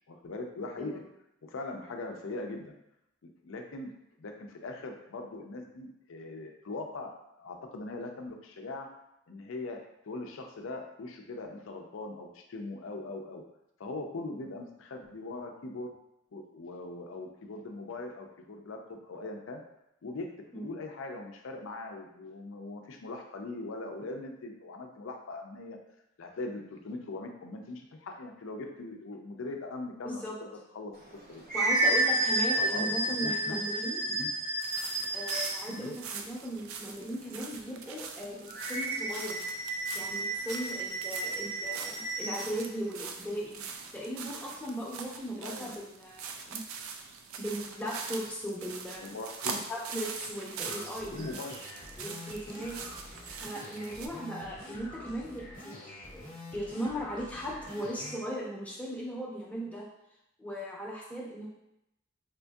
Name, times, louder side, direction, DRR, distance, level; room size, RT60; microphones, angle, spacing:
voice 1, 0.1-1.0 1.4-2.7 3.2-3.9 4.2-8.9 9.3-9.8 10.0-13.4 13.8-15.9 16.3-19.6 20.0-20.3 20.5-25.8 26.2-30.5 30.7-30.9 31.3-31.4 31.9-32.0 32.6-33.6 34.1-34.3 35.7-35.9 45.4-45.8 49.0-49.6 51.0-51.6, left 2 dB, 65° left, 3 dB, 0.4 m, -40 dB
voice 2, 30.0-30.3 31.5-34.0 35.1-39.4 39.9-46.6 47.4-49.1 49.5-51.3 52.0-59.8 60.4-61.5, equal, 5° left, -5 dB, 0.7 m, -38 dB
sound 1, 31.0-35.8 38.5-42.5, right 1 dB, 40° right, 0.7 m, -31 dB
sound 2, 34.6-54.1, right 5 dB, 80° right, 0.4 m, -43 dB
sound 3, 50.6-58.2, left 1 dB, 40° left, 0.9 m, -46 dB
4.3 x 2.6 x 2.3 m, 0.84 s
head